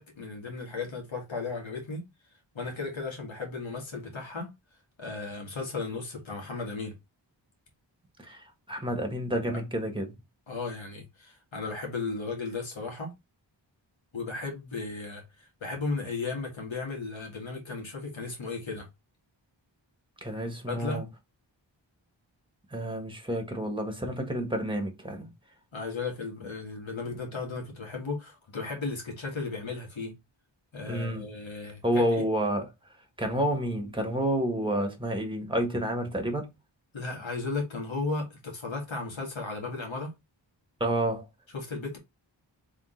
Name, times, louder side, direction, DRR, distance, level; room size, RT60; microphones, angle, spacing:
voice 1, 0.0-2.1 2.5-4.5 5.0-7.0 10.5-13.1 14.1-18.9 20.7-21.1 25.7-30.1 30.7-32.3 36.9-40.1 41.5-42.0, left 3 dB, 85° left, 2.0 m, -35 dB
voice 2, 8.2-10.1 20.2-21.1 22.7-25.3 30.9-31.2 31.8-32.7 33.2-36.5 40.8-41.3, right 1 dB, 10° right, 1.5 m, -29 dB
3.7 x 3.6 x 3.8 m
wide cardioid pair, 70°, 45 cm